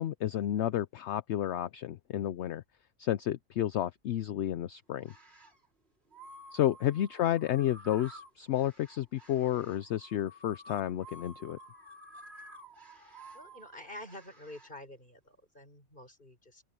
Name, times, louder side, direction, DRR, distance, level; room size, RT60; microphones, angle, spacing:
voice 1, 0.0-2.6 3.0-5.1 6.5-11.6, left 12 dB, 65° left, 0.8 m, -31 dB
sound 1, 5.0-5.6 6.1-14.7, equal, 50° right, 3.2 m, -52 dB
voice 2, 12.9-16.6, left 1 dB, 35° left, 6.4 m, -49 dB
open air
omnidirectional pair, 1.4 m